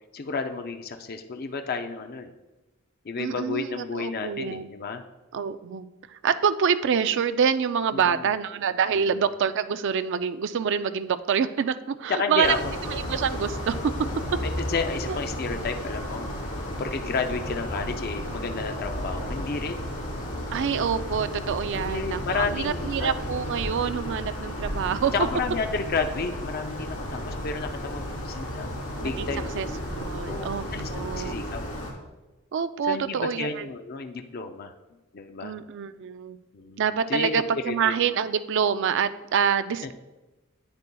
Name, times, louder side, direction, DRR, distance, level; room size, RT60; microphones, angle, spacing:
voice 1, 0.1-2.3 3.0-5.0 7.9-8.3 8.9-9.2 12.1-12.7 14.4-16.3 16.8-19.9 21.7-23.1 25.1-28.7 29.0-29.5 30.2-30.9 31.2-31.6 32.8-34.7 35.1-35.5 36.5-36.8 37.1-37.9 39.8-39.9, left 4 dB, 45° left, 6 dB, 0.5 m, -31 dB
voice 2, 3.2-4.7 5.3-12.6 12.9-13.8 15.1-15.2 20.5-25.1 29.0-29.3 29.6-30.6 30.9-31.3 32.5-33.7 35.4-36.4 36.8-39.9, right 7 dB, 60° right, 12 dB, 0.4 m, -26 dB
sound 1, 12.4-31.9, equal, 85° left, 2.9 m, -33 dB
10.5 x 8.5 x 2.3 m, 1.1 s
head